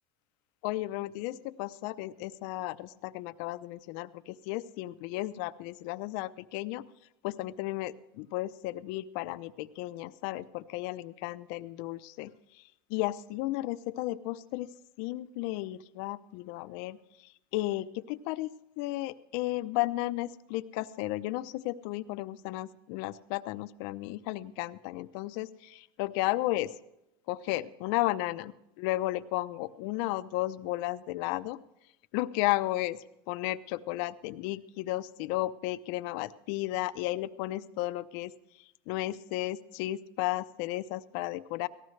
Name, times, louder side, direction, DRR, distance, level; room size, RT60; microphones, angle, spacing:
voice 1, 0.6-6.8 7.2-12.6 12.9-14.7 15.0-26.7 27.3-31.6 32.1-38.3 38.9-41.7, left 17 dB, 60° left, 13 dB, 0.6 m, -34 dB
18.5 x 14.0 x 3.2 m, 0.85 s
supercardioid pair, 145°, 13 cm